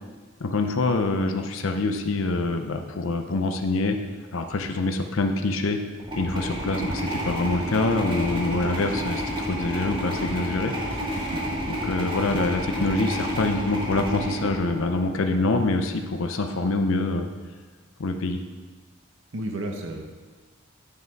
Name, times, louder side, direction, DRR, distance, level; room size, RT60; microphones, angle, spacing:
voice 1, 0.4-4.0 4.3-5.8 6.1-11.0 11.7-17.3 18.0-18.4, left 3 dB, 70° left, 6 dB, 0.6 m, -25 dB
sound 1, 6.0-15.4, equal, 25° right, 2.0 m, -30 dB
voice 2, 10.9-11.6 19.3-20.0, right 1 dB, 60° right, 2 dB, 0.9 m, -34 dB
10.0 x 5.7 x 4.6 m, 1.4 s
head